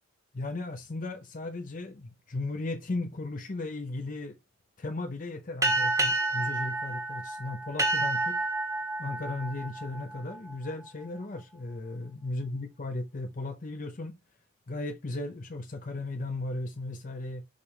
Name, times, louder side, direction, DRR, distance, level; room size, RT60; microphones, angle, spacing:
voice 1, 0.3-4.4 4.8-8.5 9.0-14.1 14.7-17.5, left 2 dB, 40° left, 0.7 m, -36 dB
Three Bells Ship Time, 5.6-10.7, right 2 dB, 15° right, 1.5 m, -30 dB
6.5 x 5.3 x 3.2 m
head